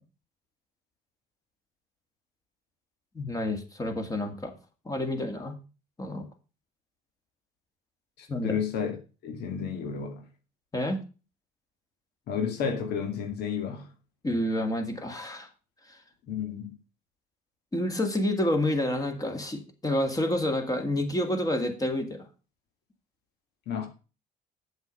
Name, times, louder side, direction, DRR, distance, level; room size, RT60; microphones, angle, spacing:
voice 1, 3.1-4.5 4.9-5.6 6.0-6.3 8.3-8.6 10.7-11.0 14.2-15.5 15.9-16.0 17.7-22.3, left 1 dB, 20° left, 2.1 m, -29 dB
voice 2, 8.2-8.9 9.2-10.2 12.3-13.9 16.3-16.7 23.7-23.9, left 7 dB, 75° left, 2.3 m, -31 dB
8.0 x 7.2 x 5.3 m
cardioid pair, 110°, 17 cm